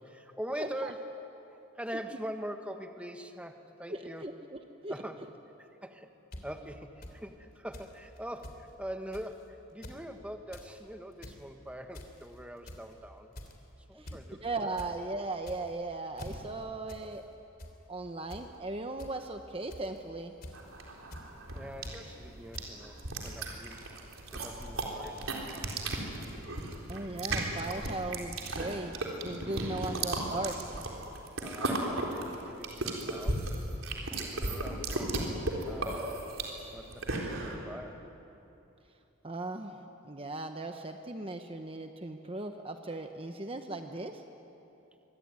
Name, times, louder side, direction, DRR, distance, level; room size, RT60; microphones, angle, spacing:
voice 1, 0.0-1.3 1.7-4.3 4.9-5.3 5.6-6.1 6.4-13.4 13.9-14.5 21.5-23.8 24.3-25.3 31.4-33.5 34.2-35.4 35.6-36.2 36.7-38.0, equal, 5° right, 6 dB, 1.4 m, -43 dB
voice 2, 0.6-0.9 3.9-4.9 14.0-14.1 14.4-17.2 17.9-20.3 26.9-28.9 29.2-30.6 39.2-39.8 40.0-44.2, right 2 dB, 25° right, 5 dB, 1.0 m, -37 dB
sound 1, 6.3-6.4 7.0-7.1 7.7-7.9 8.2-8.3 8.4-8.6 9.1-9.3 9.7-10.0 10.3-10.7 11.1-11.4 11.9-12.2 12.7-12.9 13.3-13.6 14.1-14.2 14.5-14.9 15.4-15.8 16.2-16.4 16.9-17.0 17.3-17.7 18.3-18.4 19.0-19.1 19.7-20.0 20.4-20.7 21.1-21.3 21.8-21.9 22.5-22.7 23.2-23.4, left 1 dB, 45° left, 3.3 m, -45 dB
sound 2, 20.5-37.6, right 2 dB, 75° right, 4.1 m, -35 dB
24.5 x 23.5 x 9.7 m, 2.9 s
head